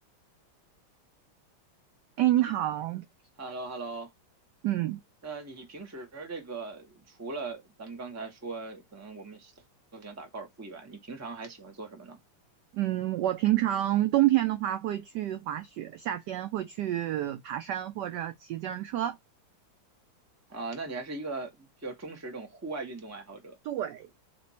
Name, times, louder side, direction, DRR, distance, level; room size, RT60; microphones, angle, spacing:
voice 1, 2.2-3.0 4.6-5.0 12.7-19.2 23.6-24.2, right 14 dB, 80° right, 0.9 m, -28 dB
voice 2, 3.4-4.1 5.2-9.5 9.9-12.2 20.5-23.6, right 3 dB, 15° right, 0.7 m, -39 dB
3.4 x 3.0 x 4.1 m
omnidirectional pair, 2.4 m